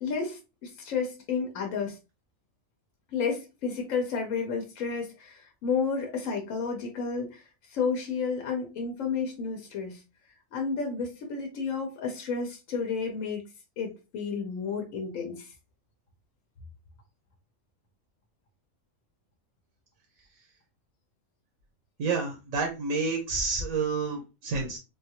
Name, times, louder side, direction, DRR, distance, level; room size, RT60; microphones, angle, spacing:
voice 1, 0.0-2.0 3.1-10.0 10.5-13.4 13.8-15.5, left 5 dB, 80° left, 1 dB, 1.1 m, -31 dB
voice 2, 22.0-24.8, right 4 dB, 85° right, 2 dB, 1.2 m, -29 dB
3.5 x 2.3 x 2.8 m, 0.28 s
omnidirectional pair, 1.4 m